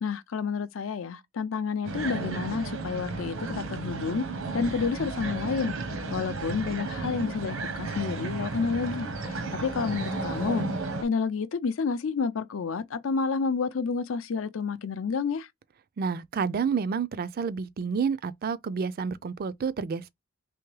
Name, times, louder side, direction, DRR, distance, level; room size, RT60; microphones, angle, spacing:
voice 1, 0.0-4.2 4.5-5.7 6.1-10.7 11.0-15.5, left 5 dB, 70° left, 0.5 m, -30 dB
sound 1, 1.8-11.0, right 3 dB, 90° right, 0.9 m, -33 dB
sound 2, 8.4-11.2, left 5 dB, 40° left, 0.9 m, -48 dB
voice 2, 16.0-20.1, right 6 dB, 50° right, 0.4 m, -29 dB
3.4 x 3.0 x 3.2 m
head